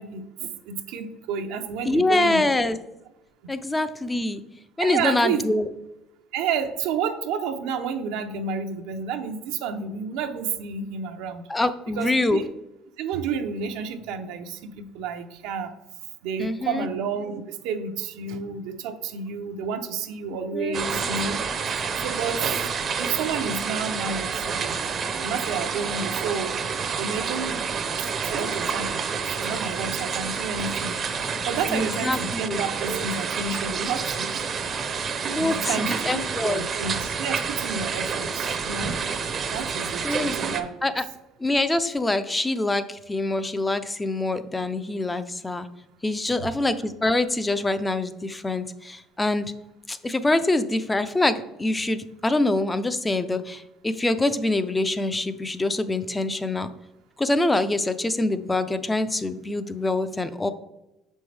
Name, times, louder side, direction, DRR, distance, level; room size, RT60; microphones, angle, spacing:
voice 1, 0.0-2.5 4.8-5.5 6.3-11.4 12.0-12.5 13.0-15.7 16.2-21.4 22.0-22.6 23.0-24.8 25.2-26.6 27.0-27.6 28.0-31.0 31.5-34.3 35.4-38.9 39.5-40.7 46.3-46.5, right 6 dB, 80° right, 5 dB, 0.7 m, -30 dB
voice 2, 1.8-2.8 3.5-4.4 4.8-5.7 11.5-12.4 16.4-16.9 20.5-20.8 31.7-32.6 35.3-36.6 40.0-40.4 40.8-41.0 41.4-45.7 46.0-49.5 49.9-56.7 57.2-60.5, left 2 dB, 10° left, 12 dB, 0.4 m, -25 dB
sound 1, 20.7-40.6, right 5 dB, 35° right, 0.6 m, -29 dB
6.9 x 5.3 x 3.3 m, 0.93 s
cardioid pair, 120°, 0 cm